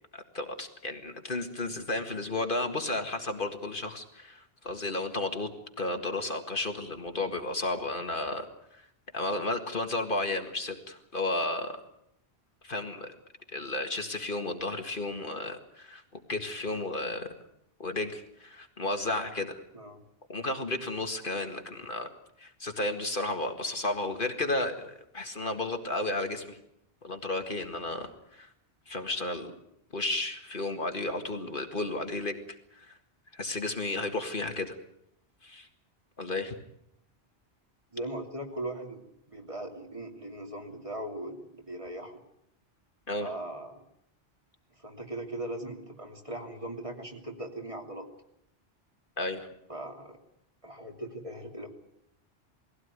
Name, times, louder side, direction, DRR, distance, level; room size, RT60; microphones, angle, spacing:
voice 1, 0.1-5.5 5.8-8.5 9.1-11.8 12.6-13.1 13.5-16.0 16.3-17.3 17.8-19.6 20.3-22.1 22.4-26.6 27.0-28.5 28.9-29.6 29.9-32.4 32.7-33.0 33.3-34.7 35.4-35.7 36.2-36.5 43.1-43.3 49.2-49.5, left 2 dB, 55° left, 5 dB, 2.0 m, -33 dB
voice 2, 37.9-42.2 43.2-43.8 44.8-48.1 49.7-50.2 50.6-51.7, right 1 dB, 30° right, 2 dB, 2.9 m, -39 dB
21.0 x 16.5 x 9.6 m, 0.77 s
omnidirectional pair, 1.1 m